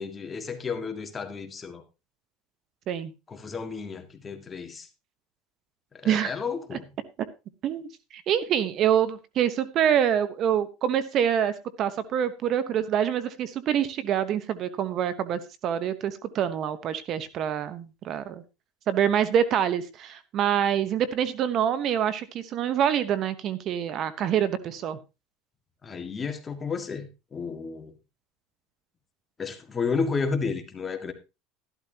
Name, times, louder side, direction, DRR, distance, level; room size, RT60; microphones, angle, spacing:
voice 1, 0.0-1.8 3.3-4.9 5.9-6.9 25.8-27.9 29.4-31.1, left 5 dB, 20° left, 1.8 m, -32 dB
voice 2, 7.6-18.4 18.9-25.0, right 9 dB, 45° right, 1.0 m, -26 dB
13.5 x 12.0 x 2.9 m
supercardioid pair, 130°, 0 cm